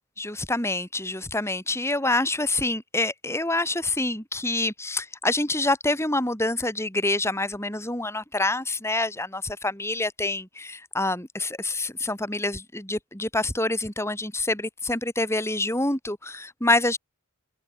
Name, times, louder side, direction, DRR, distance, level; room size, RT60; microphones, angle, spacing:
voice 1, 0.2-17.0, left 2 dB, 10° left, 7.0 m, -26 dB
head